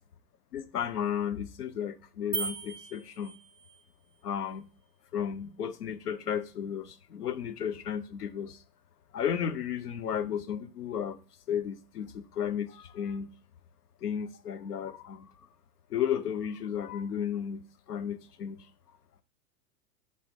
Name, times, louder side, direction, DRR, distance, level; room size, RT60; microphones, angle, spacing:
voice 1, 0.5-3.3 4.2-4.7 5.1-8.6 9.1-11.2 11.5-13.3 14.0-15.3 15.9-17.6 17.9-18.6, left 8 dB, 80° left, 0.6 m, -33 dB
sound 1, 2.3-3.9, right 5 dB, 10° right, 0.5 m, -37 dB
8.3 x 3.2 x 3.5 m
figure-of-eight pair, 95°, 46 cm